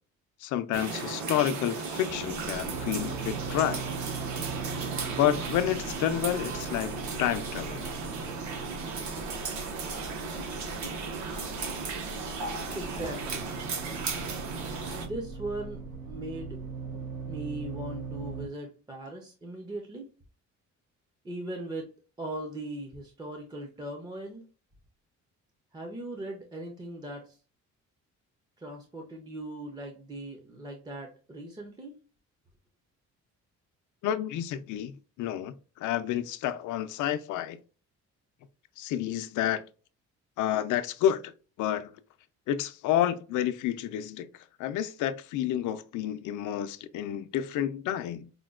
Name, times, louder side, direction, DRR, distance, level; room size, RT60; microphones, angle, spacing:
voice 1, 0.4-3.8 5.1-7.9 34.0-35.5 35.8-37.6 38.8-39.6 40.4-41.3 41.6-41.9 42.5-44.3 44.6-48.3, left 11 dB, 85° left, 0.5 m, -29 dB
sound 1, 0.7-15.1, right 4 dB, 75° right, 0.9 m, -35 dB
sound 2, 2.3-18.5, right 4 dB, 55° right, 1.8 m, -40 dB
voice 2, 12.7-13.5 15.0-16.6 17.3-20.1 21.2-21.9 22.2-24.4 25.7-27.4 28.6-31.9, right 1 dB, 15° right, 0.4 m, -39 dB
5.0 x 2.2 x 2.3 m
cardioid pair, 180°, 29 cm